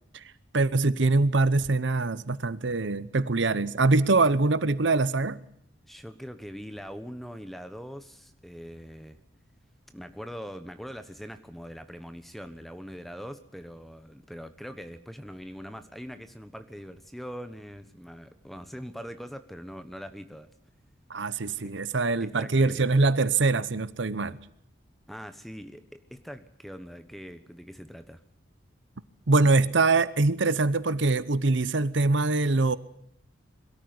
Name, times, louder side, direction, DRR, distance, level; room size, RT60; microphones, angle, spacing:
voice 1, 0.5-5.4 21.1-24.4 29.3-32.8, right 3 dB, 70° right, 0.9 m, -23 dB
voice 2, 5.8-9.2 9.9-20.5 22.2-23.0 25.1-28.2, equal, ahead, 1.1 m, -42 dB
22.0 x 13.5 x 9.6 m
head